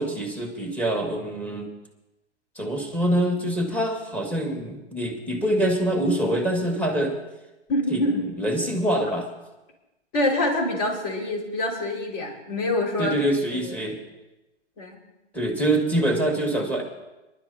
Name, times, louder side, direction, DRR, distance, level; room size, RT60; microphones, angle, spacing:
voice 1, 0.0-1.7 2.6-7.2 7.9-9.3 13.0-14.0 15.3-16.8, right 1 dB, 5° left, 1 dB, 1.9 m, -25 dB
voice 2, 7.7-8.2 10.1-13.1 13.5-13.8 14.8-15.0, left 1 dB, 35° left, -1 dB, 5.1 m, -25 dB
26.0 x 11.5 x 2.8 m, 1.0 s
hypercardioid pair, 135°, 35 cm